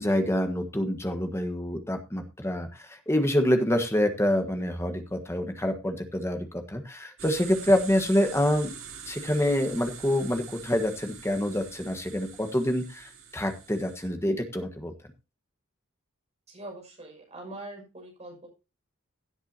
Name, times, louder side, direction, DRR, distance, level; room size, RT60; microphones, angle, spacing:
voice 1, 0.0-8.7 9.1-14.9, left 1 dB, 15° left, 6 dB, 1.4 m, -27 dB
sound 1, 7.2-14.1, right 7 dB, 80° right, 3.4 m, -44 dB
voice 2, 16.5-18.5, right 2 dB, 30° right, 0 dB, 6.1 m, -43 dB
16.5 x 8.0 x 2.9 m, 0.30 s
head